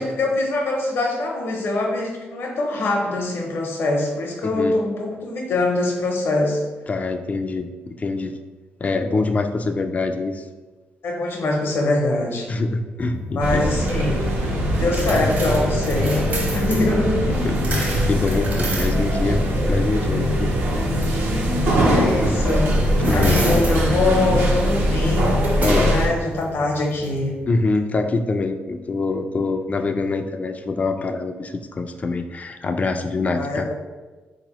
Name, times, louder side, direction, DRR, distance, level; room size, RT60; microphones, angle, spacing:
voice 1, 0.0-6.6 11.0-12.5 13.3-14.1 14.7-17.2 21.9-25.3 25.7-27.3 33.3-33.7, left 2 dB, 70° left, 0 dB, 0.8 m, -23 dB
voice 2, 4.4-4.7 6.9-8.4 8.8-10.4 12.5-13.7 17.4-20.6 23.0-23.4 25.6-26.0 27.5-33.7, left 3 dB, 35° left, 7 dB, 0.3 m, -25 dB
sound 1, 13.0-27.7, equal, 55° right, 1.0 m, -31 dB
sound 2, 13.4-26.1, equal, 75° right, 0.7 m, -21 dB
3.8 x 2.9 x 2.9 m, 1.3 s
cardioid pair, 65°, 4 cm